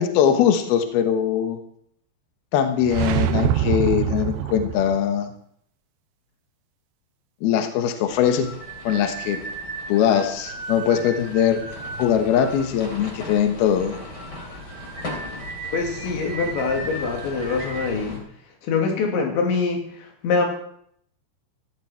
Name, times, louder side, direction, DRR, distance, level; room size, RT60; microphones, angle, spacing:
voice 1, 0.0-1.6 2.5-5.3 7.4-8.5 8.8-9.4 9.9-11.6 12.0-14.0, left 9 dB, 70° left, 7 dB, 2.8 m, -21 dB
sound 1, 2.8-5.1, right 10 dB, 80° right, 2.4 m, -24 dB
sound 2, 8.1-18.2, left 2 dB, 25° left, 3.2 m, -39 dB
sound 3, 8.1-17.9, right 3 dB, 35° right, 3.3 m, -37 dB
voice 2, 15.7-18.2 18.6-20.5, left 4 dB, 85° left, 2 dB, 4.9 m, -24 dB
17.0 x 14.0 x 4.5 m, 0.66 s
omnidirectional pair, 5.1 m